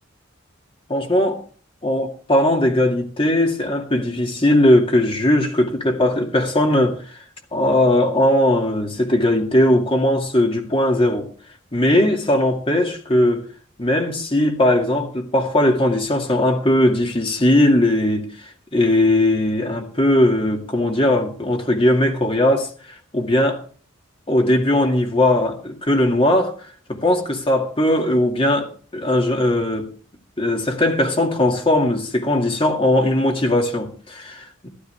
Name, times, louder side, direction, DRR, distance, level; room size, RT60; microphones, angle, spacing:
voice 1, 0.9-1.4 1.8-7.0 7.5-11.3 11.7-13.4 13.8-18.3 18.7-22.7 23.1-23.6 24.3-29.9 30.4-34.7, left 1 dB, 25° left, 2.2 m, -19 dB
14.5 x 13.5 x 3.4 m
head